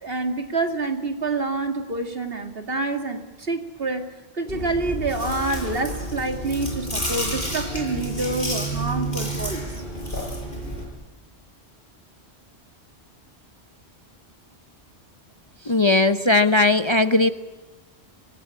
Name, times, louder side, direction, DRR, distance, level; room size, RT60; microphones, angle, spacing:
voice 1, 0.0-4.1 4.3-9.8, right 3 dB, 60° right, 6 dB, 2.4 m, -27 dB
Chewing mastication, 4.5-10.8, right 1 dB, 50° left, 6.9 m, -30 dB
voice 2, 15.7-17.3, left 2 dB, 25° left, 9 dB, 0.9 m, -18 dB
26.0 x 19.0 x 9.9 m, 1.2 s
omnidirectional pair, 1.1 m